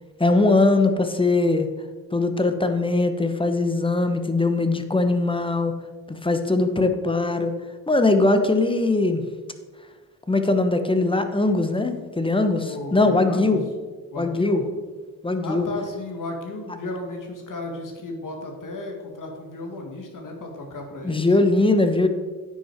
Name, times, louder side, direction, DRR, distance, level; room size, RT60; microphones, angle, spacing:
voice 1, 0.2-1.7 2.1-5.7 6.1-7.5 7.9-9.2 10.3-13.6 14.2-14.6 15.2-15.7 21.0-22.1, left 2 dB, 15° left, 7 dB, 1.0 m, -21 dB
voice 2, 12.6-13.6 14.1-14.6 15.4-21.3, left 2 dB, 60° left, 2 dB, 1.8 m, -34 dB
9.8 x 6.1 x 4.5 m, 1.4 s
cardioid pair, 75°, 35 cm